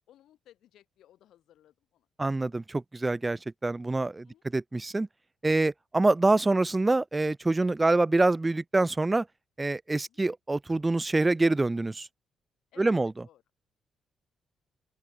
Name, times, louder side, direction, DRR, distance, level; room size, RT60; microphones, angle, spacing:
voice 1, 0.0-2.1 4.2-4.4 10.1-10.2 12.7-13.4, left 12 dB, 75° left, 3.8 m, -60 dB
voice 2, 2.2-4.3 4.5-5.1 5.4-9.3 9.6-12.1 12.8-13.1, right 2 dB, 20° right, 0.5 m, -25 dB
open air
cardioid pair, 90°, 0 cm